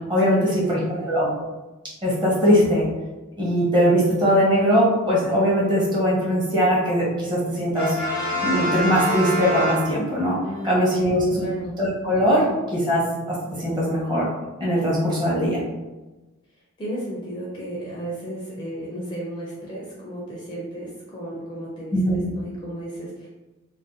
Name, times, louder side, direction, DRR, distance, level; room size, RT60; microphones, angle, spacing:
voice 1, 0.2-0.6 0.9-1.1 10.4-11.8 16.8-22.0 22.3-23.3, right 1 dB, 20° left, -5 dB, 0.4 m, -34 dB
voice 2, 0.7-1.3 2.0-2.9 3.4-8.0 8.4-10.4 10.6-11.5 11.8-12.5 12.7-13.0 13.6-14.3 14.6-15.6 21.9-22.2, equal, 20° right, -6 dB, 0.8 m, -20 dB
Brass instrument, 7.7-10.4, equal, 85° right, 1.1 m, -26 dB
2.6 x 2.1 x 3.6 m, 1.1 s
head